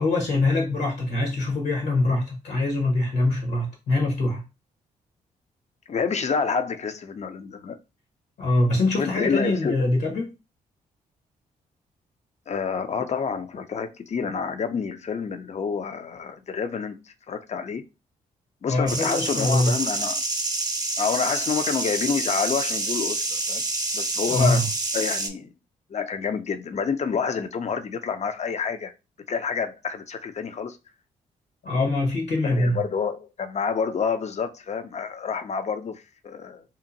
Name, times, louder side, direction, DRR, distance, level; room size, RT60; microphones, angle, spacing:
voice 1, 0.0-4.4 8.4-10.3 18.6-19.7 24.3-24.7 31.6-32.8, left 2 dB, 70° left, 1.2 m, -23 dB
voice 2, 5.9-7.8 8.9-9.9 12.5-17.8 18.6-20.2 21.0-23.6 23.9-24.6 24.9-25.5 25.9-28.9 29.3-30.8 32.4-36.6, left 6 dB, 40° left, 0.5 m, -28 dB
sound 1, 18.9-25.3, right 2 dB, 20° right, 0.7 m, -28 dB
2.8 x 2.4 x 2.6 m
hypercardioid pair, 45°, 18 cm